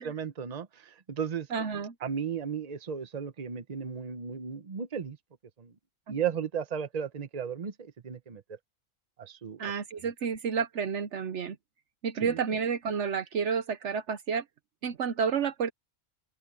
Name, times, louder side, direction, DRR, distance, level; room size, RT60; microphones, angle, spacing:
voice 1, 0.0-1.5 2.0-5.2 5.6-5.7 6.1-8.6 9.2-9.6 12.2-12.4, right 7 dB, 35° right, 1.0 m, -35 dB
voice 2, 1.5-1.9 6.1-6.2 9.6-11.6 12.0-14.4 14.8-15.7, right 6 dB, 65° right, 1.1 m, -30 dB
open air
omnidirectional pair, 1.3 m